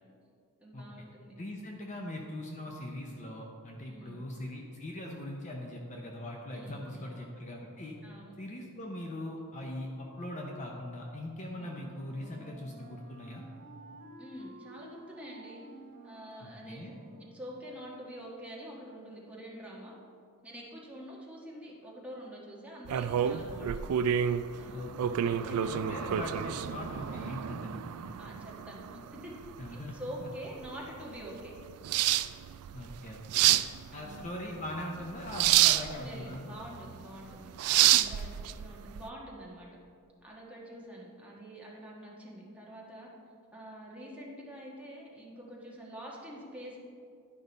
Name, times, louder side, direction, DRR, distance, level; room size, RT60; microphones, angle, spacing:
voice 1, 0.6-1.3 3.9-4.2 6.5-7.2 8.0-8.3 11.6-11.8 14.2-15.6 16.0-16.9 17.2-19.9 20.4-24.0 24.6-24.8 25.2-25.7 26.0-26.1 28.2-31.5 33.9-34.2 35.9-37.5 37.8-39.7 40.2-43.1 43.5-46.8, equal, 5° right, -5 dB, 1.4 m, -46 dB
voice 2, 1.4-8.0 8.4-13.4 16.4-17.0 24.7-25.4 25.7-27.8 29.6-30.3 32.7-33.5 33.9-36.5 37.9-38.0, left 1 dB, 35° left, 0 dB, 0.6 m, -41 dB
Wind instrument woodwind instrument, 11.5-17.7, right 2 dB, 50° right, 1.6 m, -52 dB
sound 1, 22.8-39.0, right 11 dB, 70° right, 0.3 m, -29 dB
11.0 x 5.2 x 4.0 m, 2.5 s
head